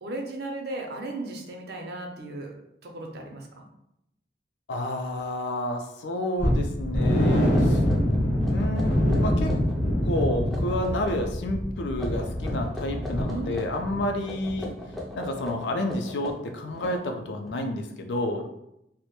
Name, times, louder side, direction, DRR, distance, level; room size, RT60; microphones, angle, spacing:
voice 1, 0.0-3.7 13.3-13.5, right 2 dB, 65° right, 2 dB, 0.5 m, -36 dB
voice 2, 4.7-7.8 8.5-9.5 10.0-14.7 15.1-18.4, left 1 dB, 75° left, 5 dB, 0.4 m, -30 dB
sound 1, 6.4-14.2 14.4-14.6 15.0-15.1, equal, 45° left, 0.9 m, -25 dB
sound 2, 7.5-9.8 10.1-11.3 11.9-13.9 14.2-17.5, left 1 dB, ahead, 0.3 m, -39 dB
2.1 x 2.0 x 2.9 m, 0.81 s
head